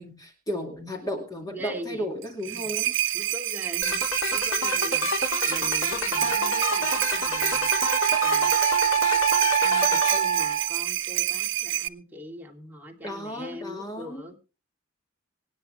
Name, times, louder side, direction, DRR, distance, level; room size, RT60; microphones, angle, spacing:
voice 1, 0.0-2.9 13.0-14.2, equal, 20° left, 3 dB, 2.3 m, -34 dB
voice 2, 1.4-2.1 2.4-2.7 3.1-4.0 4.3-5.1 5.5-8.5 9.6-14.4, equal, 10° right, 0 dB, 2.8 m, -42 dB
sound 1, 2.2-11.9, right 14 dB, 65° right, 0.7 m, -28 dB
sound 2, 3.8-10.2, left 3 dB, 85° left, 4.0 m, -30 dB
Wind instrument woodwind instrument, 5.5-5.6 6.1-10.8, right 8 dB, 45° right, 1.6 m, -25 dB
25.5 x 9.7 x 3.3 m, 0.34 s
head